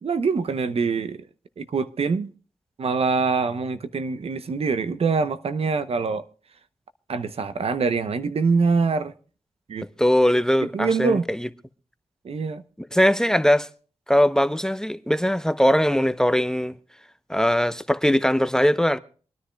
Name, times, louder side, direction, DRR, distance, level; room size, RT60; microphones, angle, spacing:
voice 1, 0.0-1.2 1.6-2.3 2.8-6.2 7.1-9.1 9.7-9.9 10.6-11.2 12.2-12.6, right 4 dB, 70° right, 0.7 m, -24 dB
voice 2, 10.0-11.5 12.9-13.7 14.1-16.7 17.3-19.0, equal, 5° left, 0.6 m, -20 dB
26.5 x 10.0 x 2.2 m
cardioid pair, 55°, 11 cm